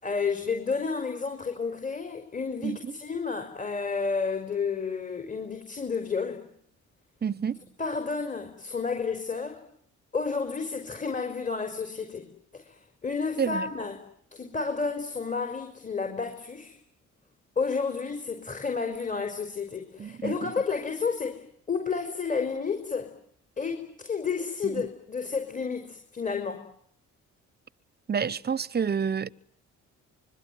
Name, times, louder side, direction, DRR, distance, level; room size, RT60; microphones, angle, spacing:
voice 1, 0.0-6.4 7.8-9.6 10.1-12.3 12.5-14.0 14.3-16.8 17.6-23.1 23.6-26.6, left 5 dB, 25° left, 4.8 m, -31 dB
voice 2, 7.2-7.6 13.4-13.7 20.0-20.5 24.6-24.8 28.1-29.3, right 7 dB, 35° right, 1.0 m, -29 dB
25.0 x 22.5 x 9.3 m
cardioid pair, 90°, 30 cm